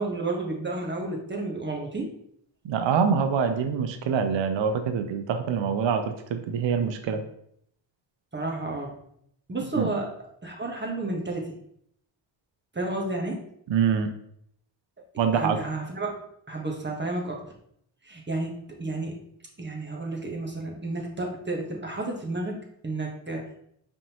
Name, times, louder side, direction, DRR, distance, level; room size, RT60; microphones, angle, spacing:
voice 1, 0.0-2.1 8.3-9.0 9.5-10.1 10.4-11.6 12.7-13.4 15.3-17.4 18.0-19.2 19.6-22.6 22.8-23.5, right 2 dB, 20° right, 0 dB, 1.3 m, -31 dB
voice 2, 2.6-7.2 9.8-9.9 13.7-14.1 15.2-15.6, right 6 dB, 65° right, 7 dB, 0.7 m, -25 dB
5.0 x 3.6 x 2.9 m, 0.69 s
cardioid pair, 70°, 48 cm